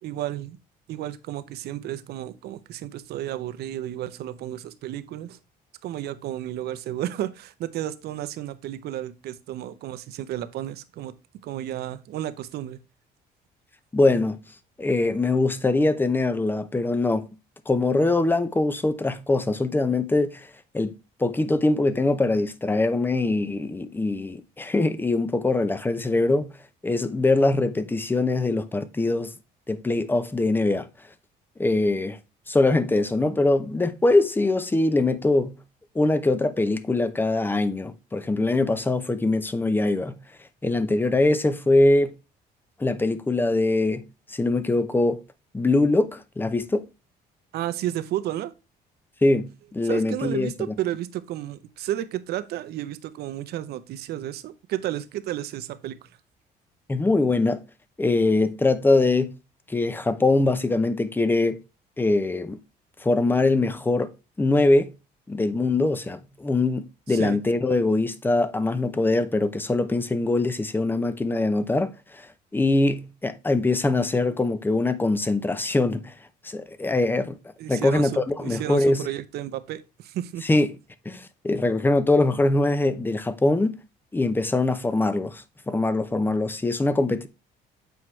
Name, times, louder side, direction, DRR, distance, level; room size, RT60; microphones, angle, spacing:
voice 1, 0.0-0.6 0.9-5.4 5.8-11.1 11.4-12.8 47.5-48.5 49.8-56.1 65.8-65.9 67.1-67.4 77.6-80.4, right 13 dB, 70° right, 0.7 m, -32 dB
voice 2, 13.9-14.4 14.8-17.3 17.7-20.5 20.7-20.9 21.2-26.5 26.8-29.3 29.7-30.9 31.6-32.2 32.5-35.6 35.9-40.2 40.6-42.1 42.8-45.2 45.5-46.9 49.2-50.8 56.9-57.6 58.0-59.4 59.7-61.6 62.0-62.6 63.0-64.1 64.4-64.9 65.3-72.3 72.5-76.1 76.4-77.4 77.7-79.1 80.4-80.7 81.1-83.7 84.1-87.3, left 2 dB, 10° left, 0.6 m, -23 dB
7.9 x 4.7 x 3.2 m
cardioid pair, 110°, 17 cm